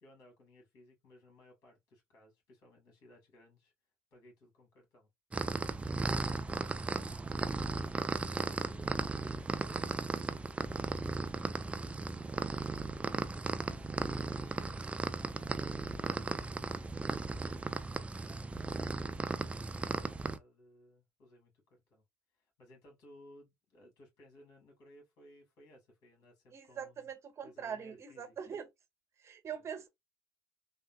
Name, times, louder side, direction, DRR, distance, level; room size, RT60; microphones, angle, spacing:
voice 1, 0.0-3.7 4.1-5.1 8.0-13.0 13.5-18.9 19.4-22.0 22.3-27.1 27.4-28.6 29.5-29.6, left 1 dB, 65° left, 2.0 m, -61 dB
sound 1, 5.3-20.4, right 3 dB, 15° right, 0.4 m, -36 dB
voice 2, 26.5-28.7 29.2-29.9, right 7 dB, 40° right, 1.1 m, -43 dB
3.6 x 2.1 x 2.3 m
hypercardioid pair, 70°, 7 cm